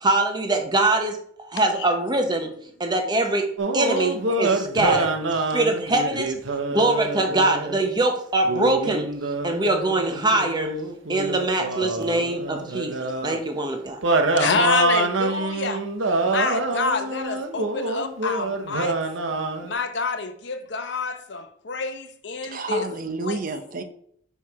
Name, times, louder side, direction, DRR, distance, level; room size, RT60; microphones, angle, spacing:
voice 1, 0.0-2.5 2.8-3.5 3.7-5.1 5.5-6.3 6.7-9.1 9.4-10.7 11.1-14.0, right 2 dB, 20° right, 1.0 m, -23 dB
sound 1, 3.6-7.8 8.4-13.4 14.0-19.7, right 2 dB, 80° right, 0.9 m, -26 dB
voice 2, 14.4-15.8 16.2-19.0 19.6-22.8 23.2-23.4, left 4 dB, 60° left, 0.7 m, -27 dB
voice 3, 22.4-23.8, right 3 dB, 45° right, 0.7 m, -30 dB
5.6 x 4.7 x 4.7 m
head